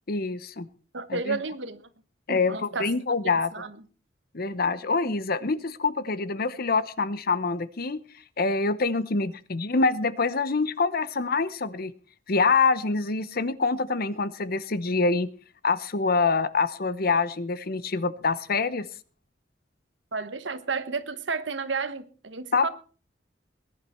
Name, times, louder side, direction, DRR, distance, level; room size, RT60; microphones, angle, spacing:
voice 1, 0.1-0.7 1.1-1.4 2.3-3.5 4.3-8.0 8.4-11.9 12.3-15.3 15.6-18.9 22.5-22.7, left 4 dB, 55° left, 0.9 m, -25 dB
voice 2, 0.9-1.8 2.3-2.9 3.5-3.7 5.0-5.1 20.1-22.7, right 4 dB, 80° right, 1.3 m, -32 dB
20.5 x 10.5 x 4.4 m
head